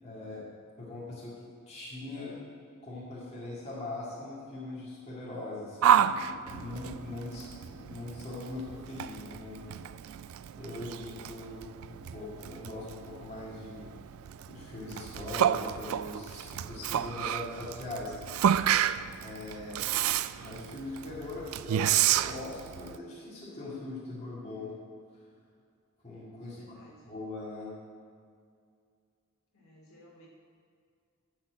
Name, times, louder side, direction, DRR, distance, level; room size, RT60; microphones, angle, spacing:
voice 1, 0.0-1.3 1.7-2.4 2.8-9.7 10.6-14.0 14.5-18.2 19.2-19.9 20.3-24.7 26.0-26.6 27.1-27.7, left 2 dB, 30° left, -7 dB, 2.2 m, -41 dB
Yell, 5.8-23.0, right 10 dB, 65° right, 0.3 m, -30 dB
voice 2, 18.6-19.2 26.4-27.1 29.5-30.3, equal, 65° left, -4 dB, 2.7 m, -58 dB
12.0 x 4.3 x 7.5 m, 2.2 s
head